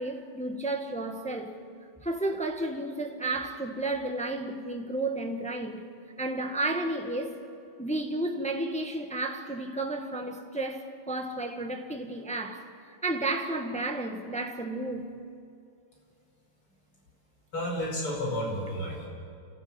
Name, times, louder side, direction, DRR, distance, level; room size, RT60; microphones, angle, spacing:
voice 1, 0.0-1.6 2.0-5.8 6.2-7.4 7.8-15.1, right 2 dB, 5° left, 1.2 m, -32 dB
voice 2, 17.5-19.1, equal, 80° left, 6.1 m, -31 dB
29.5 x 14.5 x 8.9 m
omnidirectional pair, 2.4 m